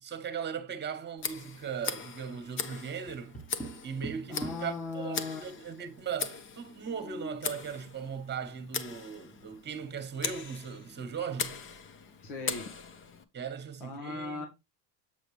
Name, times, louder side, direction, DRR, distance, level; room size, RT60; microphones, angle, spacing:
voice 1, 0.0-3.4 3.8-11.6 13.3-14.5, right 7 dB, 25° right, 1.4 m, -38 dB
Tick, 1.2-13.2, left 6 dB, 30° left, 0.8 m, -40 dB
Tap, 3.1-4.8 6.8-7.5, right 1 dB, 5° left, 1.3 m, -42 dB
voice 2, 4.3-5.5 12.2-12.7 13.8-14.5, left 3 dB, 65° left, 1.6 m, -38 dB
7.9 x 5.1 x 3.2 m
supercardioid pair, 115°, 43 cm